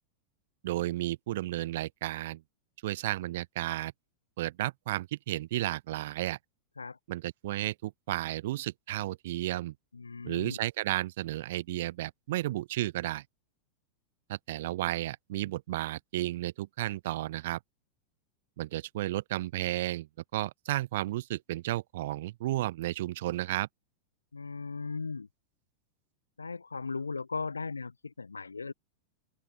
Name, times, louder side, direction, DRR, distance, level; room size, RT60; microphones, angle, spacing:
voice 1, 0.6-2.4 2.8-3.9 4.4-6.4 7.1-9.7 10.2-13.2 14.3-17.6 18.6-20.1 20.3-23.7, right 15 dB, 55° right, 0.5 m, -33 dB
voice 2, 9.9-10.6 24.3-25.3 26.4-28.7, left 4 dB, 75° left, 1.5 m, -37 dB
open air
figure-of-eight pair, 90°, 0 cm